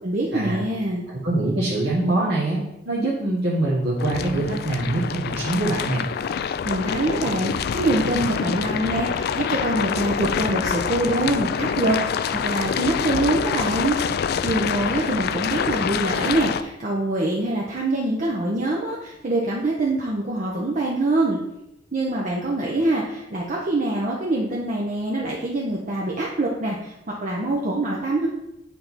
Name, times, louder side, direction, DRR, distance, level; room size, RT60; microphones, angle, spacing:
voice 1, 0.0-1.0 6.6-14.0 14.4-21.4 21.9-26.9 27.2-28.3, right 2 dB, 45° right, -3 dB, 0.8 m, -24 dB
voice 2, 1.1-6.0, right 2 dB, 65° right, -6 dB, 1.2 m, -24 dB
sound 1, 4.0-16.6, left 7 dB, 55° left, 0.3 m, -26 dB
7.5 x 4.5 x 4.1 m, 0.86 s
head